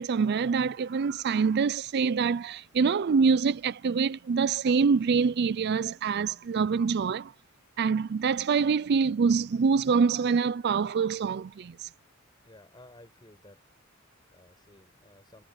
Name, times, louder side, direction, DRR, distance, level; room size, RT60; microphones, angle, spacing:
voice 1, 0.0-7.3 7.8-11.9, right 5 dB, 50° right, 0.4 m, -25 dB
voice 2, 12.4-13.6 14.0-15.4, left 1 dB, 20° left, 6.4 m, -55 dB
head